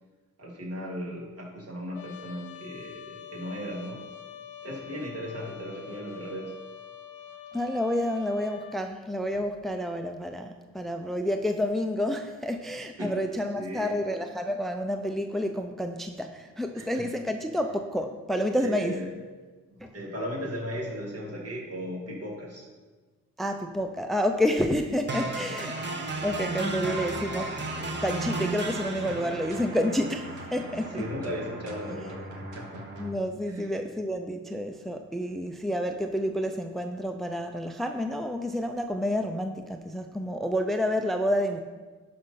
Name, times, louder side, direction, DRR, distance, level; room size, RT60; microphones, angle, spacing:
voice 1, 0.4-4.0 4.6-6.6 13.0-13.2 13.6-14.1 16.7-17.1 18.6-19.1 19.7-22.7 24.7-24.9 25.1-26.1 30.6-32.8 33.4-33.7, equal, 55° right, -3 dB, 3.2 m, -37 dB
Trumpet, 1.9-8.8, left 9 dB, 85° left, 0.6 m, -45 dB
voice 2, 7.5-19.0 19.8-19.9 23.4-25.7 26.2-27.6 28.0-31.0 33.0-41.6, equal, ahead, 6 dB, 0.6 m, -29 dB
sound 1, 25.1-33.1, right 2 dB, 35° right, 1.5 m, -35 dB
sound 2, 26.1-33.1, right 2 dB, 85° right, 1.5 m, -43 dB
11.5 x 5.2 x 5.7 m, 1.3 s
cardioid pair, 85°, 29 cm